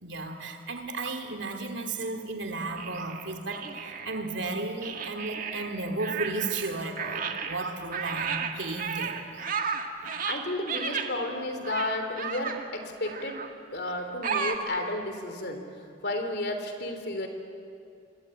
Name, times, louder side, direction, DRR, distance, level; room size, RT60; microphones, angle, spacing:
voice 1, 0.0-9.5, right 3 dB, 85° right, 6 dB, 2.8 m, -34 dB
sound 1, 2.8-4.3 4.8-6.7 7.0-11.1 11.6-12.7 13.0-13.5 14.2-14.6, right 6 dB, 50° right, 1.8 m, -33 dB
voice 2, 10.0-13.4 13.7-15.6 16.0-17.3, left 1 dB, 60° left, 6 dB, 3.5 m, -32 dB
27.0 x 23.5 x 8.9 m, 2.5 s
head